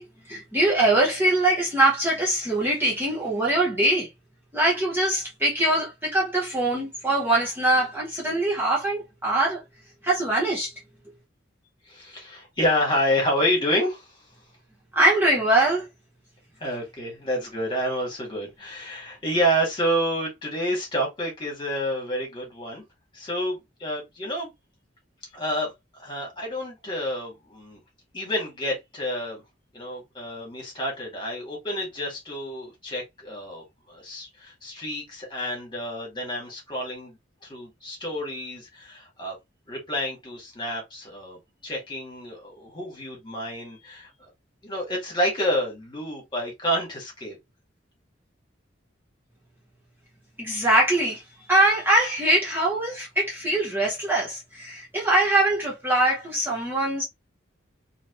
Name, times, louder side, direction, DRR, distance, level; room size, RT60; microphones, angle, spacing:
voice 1, 0.0-4.1 4.5-9.6 10.0-10.7 14.9-15.9 50.4-57.0, right 1 dB, 10° right, 0.9 m, -23 dB
voice 2, 11.9-14.2 16.6-22.8 23.1-24.5 25.3-25.7 26.0-27.8 28.1-29.4 29.7-39.4 39.7-44.1 44.6-47.4, equal, 25° left, 1.8 m, -29 dB
3.0 x 3.0 x 3.0 m
head